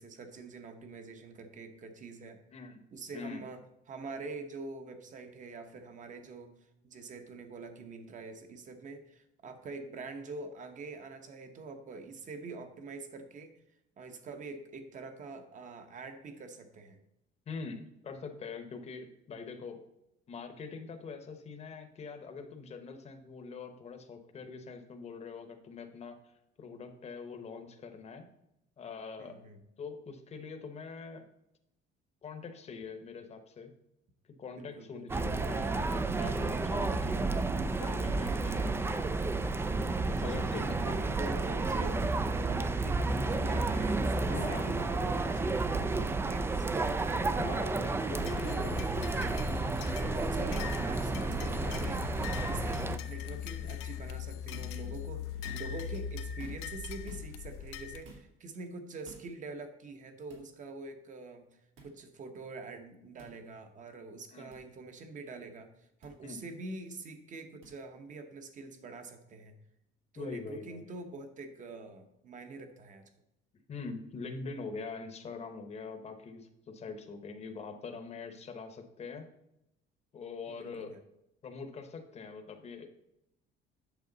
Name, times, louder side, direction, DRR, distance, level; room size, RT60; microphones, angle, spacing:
voice 1, 0.0-2.4 2.9-6.5 6.8-13.5 14.0-17.0 29.2-29.6 34.6-35.2 38.2-38.7 39.9-47.6 48.1-48.8 49.4-52.1 52.5-61.5 61.8-69.5 70.1-73.1 76.8-76.9 80.5-81.0, right 3 dB, 35° right, 7 dB, 1.0 m, -45 dB
voice 2, 2.5-2.8 3.1-3.4 17.5-19.8 20.3-26.2 26.6-28.2 28.8-29.3 29.8-31.2 32.2-33.7 34.4-37.3 37.8-39.0 40.2-40.9 44.2-44.7 47.2-48.7 52.8-53.0 64.3-64.5 66.2-66.5 70.2-70.9 73.7-79.3 80.1-80.9 81.4-82.9, left 4 dB, 30° left, 6 dB, 0.9 m, -43 dB
sound 1, 35.1-53.0, right 3 dB, 10° right, 0.3 m, -31 dB
sound 2, 48.2-58.0, left 10 dB, 85° left, 0.7 m, -40 dB
sound 3, 54.5-54.8 55.3-55.9 56.4-56.8 57.1-57.3 58.0-58.3 59.0-59.3 60.3-60.4 61.8-61.9 63.2-63.3 64.5-64.6 66.0-66.1 67.6-67.7, right 3 dB, 70° right, 2.3 m, -51 dB
8.1 x 6.4 x 3.9 m, 0.85 s
cardioid pair, 140°, 21 cm